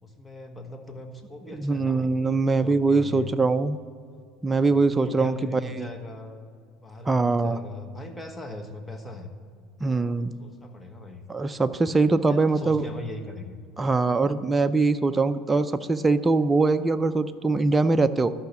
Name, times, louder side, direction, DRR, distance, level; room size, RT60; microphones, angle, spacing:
voice 1, 0.0-2.1 2.5-3.3 4.7-6.5 6.8-9.3 10.1-11.2 12.2-13.6, left 2 dB, 15° left, 5 dB, 1.4 m, -40 dB
voice 2, 1.5-3.8 4.4-5.9 7.1-7.6 9.8-10.3 11.3-12.8 13.8-18.3, right 3 dB, 15° right, 9 dB, 0.5 m, -22 dB
13.0 x 5.8 x 7.0 m, 2.2 s
supercardioid pair, 95°, 0 cm